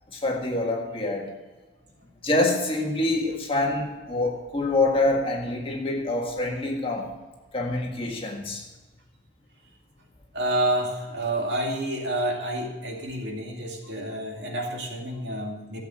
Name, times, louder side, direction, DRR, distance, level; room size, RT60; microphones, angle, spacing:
voice 1, 0.1-1.3 2.2-7.1 7.5-8.6, left 2 dB, 30° left, 0 dB, 1.8 m, -26 dB
voice 2, 10.3-15.8, right 1 dB, 60° right, 0 dB, 2.4 m, -29 dB
13.0 x 7.8 x 6.5 m, 1.2 s
head